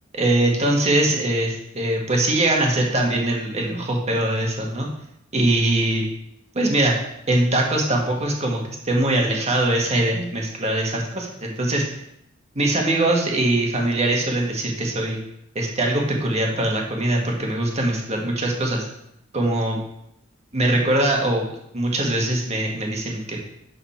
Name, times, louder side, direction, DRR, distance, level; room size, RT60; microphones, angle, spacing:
voice 1, 0.2-4.9 5.3-6.0 6.5-7.0 7.3-11.8 12.5-15.2 15.5-18.8 19.3-19.8 20.5-21.5 21.7-23.4, right 1 dB, 35° right, -1 dB, 1.6 m, -22 dB
11.5 x 4.1 x 4.3 m, 0.79 s
head